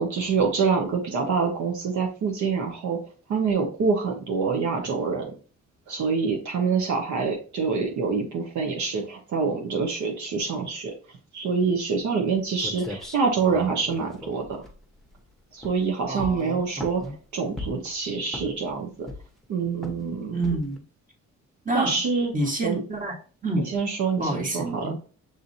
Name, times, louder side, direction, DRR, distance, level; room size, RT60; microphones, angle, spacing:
voice 1, 0.0-3.0 3.3-5.3 5.9-10.9 11.3-14.6 15.5-18.9 19.5-20.4 21.7-22.3 22.6-22.8 23.7-24.9, right 5 dB, 70° right, 2 dB, 1.0 m, -26 dB
sound 1, 12.3-12.4 12.6-15.2 15.6-15.9 16.2-17.1 17.6-17.9 18.3-18.7 19.1-19.4 19.8-20.1 20.4-20.8, left 1 dB, ahead, 0.9 m, -38 dB
voice 2, 16.1-16.6 17.0-17.1 20.3-20.8 21.6-22.0 22.3-23.1 23.4-23.7 24.2-24.9, right 2 dB, 25° right, 1 dB, 1.5 m, -28 dB
6.6 x 2.6 x 2.7 m, 0.38 s
cardioid pair, 90°, 30 cm